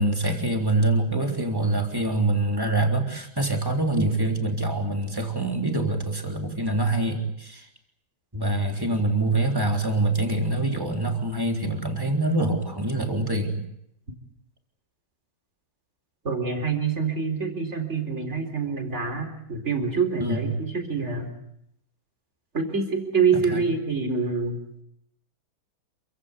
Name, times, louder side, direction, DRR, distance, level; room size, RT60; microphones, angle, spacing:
voice 1, 0.0-7.7 8.3-13.6 20.2-20.4 23.5-23.6, right 2 dB, 10° right, 3 dB, 3.5 m, -25 dB
voice 2, 16.2-21.3 22.5-24.8, right 5 dB, 35° right, 5 dB, 4.2 m, -26 dB
28.0 x 16.0 x 9.7 m, 0.78 s
omnidirectional pair, 2.1 m